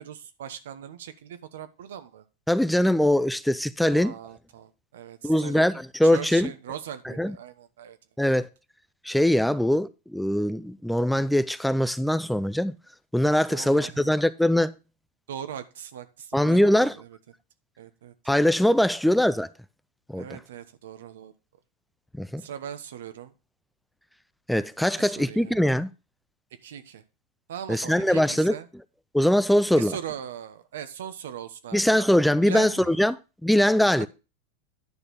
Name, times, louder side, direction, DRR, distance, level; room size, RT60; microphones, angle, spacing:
voice 1, 0.0-2.2 3.9-5.7 6.0-8.0 13.5-14.1 15.3-17.2 17.8-18.1 20.1-21.3 22.4-23.3 25.0-25.6 26.6-27.0 27.5-28.7 29.7-32.0 32.4-33.0, right 9 dB, 85° right, 1.0 m, -39 dB
voice 2, 2.5-4.1 5.2-6.5 7.2-7.4 8.2-8.5 9.0-12.8 13.1-14.7 16.3-16.9 18.3-19.5 20.1-20.3 22.2-22.4 24.5-25.9 27.7-28.6 29.1-30.0 31.7-33.2 33.4-34.1, left 1 dB, ahead, 0.3 m, -22 dB
9.9 x 4.4 x 5.0 m
supercardioid pair, 125°, 0 cm